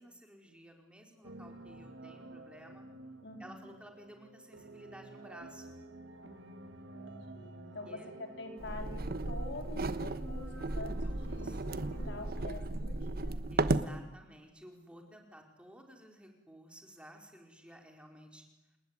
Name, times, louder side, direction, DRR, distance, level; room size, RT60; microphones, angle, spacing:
voice 1, 0.0-2.8 3.4-5.8 7.9-8.1 10.6-11.6 13.5-18.4, equal, 5° right, 2 dB, 4.8 m, -54 dB
sound 1, 1.2-12.5, right 2 dB, 70° right, 2.2 m, -50 dB
voice 2, 3.2-3.7 6.2-13.4, left 2 dB, 70° left, 4 dB, 4.1 m, -47 dB
sound 2, 8.6-13.9, right 2 dB, 55° right, 1.3 m, -35 dB
28.5 x 20.0 x 9.7 m, 0.99 s
head